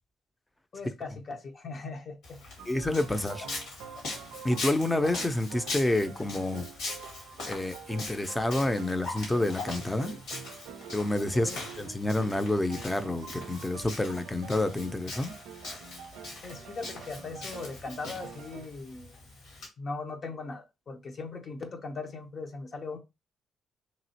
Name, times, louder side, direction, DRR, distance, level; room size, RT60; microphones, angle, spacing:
voice 1, 0.7-2.4 3.2-3.3 10.1-10.2 11.4-11.6 16.4-19.2 19.8-23.0, left 3 dB, 50° left, 0.8 m, -39 dB
Walk footsteps, 2.2-19.7, left 2 dB, 75° left, 1.8 m, -41 dB
sound 1, 2.6-18.7, right 7 dB, 75° right, 0.3 m, -47 dB
voice 2, 2.7-3.5 4.4-6.7 7.4-10.1 10.9-15.3, left 1 dB, 15° left, 0.6 m, -29 dB
3.0 x 2.7 x 2.8 m
hypercardioid pair, 45°, 0 cm